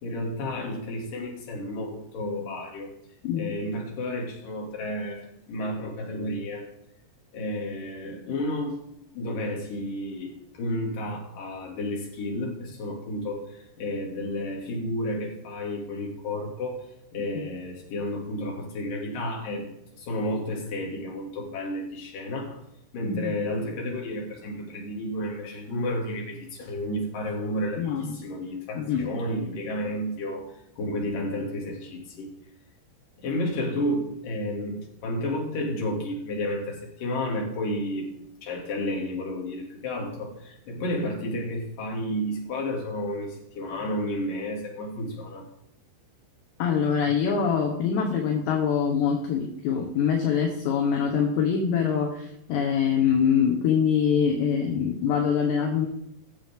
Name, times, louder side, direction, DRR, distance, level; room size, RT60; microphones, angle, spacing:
voice 1, 0.0-2.9 3.3-6.7 7.3-8.8 9.1-19.7 19.9-22.6 22.9-32.3 33.2-38.1 38.4-45.5, left 1 dB, 50° left, -1 dB, 3.7 m, -31 dB
voice 2, 23.0-23.3 27.8-28.1 28.8-29.1 46.6-55.9, left 7 dB, 70° left, 2 dB, 3.2 m, -24 dB
19.5 x 7.5 x 3.7 m, 0.77 s
omnidirectional pair, 5.5 m